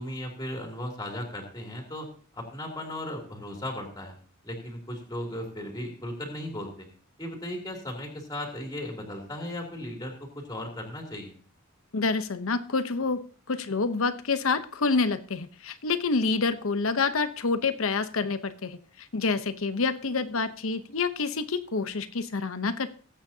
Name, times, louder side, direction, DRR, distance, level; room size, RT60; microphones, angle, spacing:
voice 1, 0.0-2.1 2.3-4.1 4.4-6.9 7.2-11.4, left 1 dB, 15° left, 1 dB, 2.8 m, -36 dB
voice 2, 11.9-13.2 13.5-22.9, left 4 dB, 70° left, 11 dB, 0.9 m, -27 dB
20.5 x 8.7 x 2.8 m, 0.40 s
head